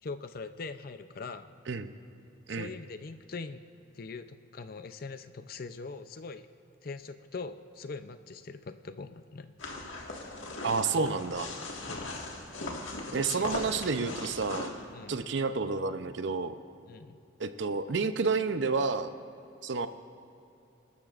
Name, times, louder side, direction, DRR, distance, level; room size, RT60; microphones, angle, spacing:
voice 1, 0.0-1.6 2.5-3.6 3.9-6.5 6.8-9.5 11.9-12.1 13.1-13.7 14.0-14.2 14.9-15.2 16.9-17.1, left 4 dB, 50° left, 10 dB, 0.5 m, -42 dB
sound 1, 9.6-14.7, left 2 dB, 85° left, 1.7 m, -39 dB
voice 2, 10.6-11.5 13.1-14.7 15.1-16.5 17.4-19.1 19.6-19.9, right 4 dB, 70° right, 10 dB, 0.6 m, -30 dB
24.0 x 13.5 x 2.5 m, 2.8 s
head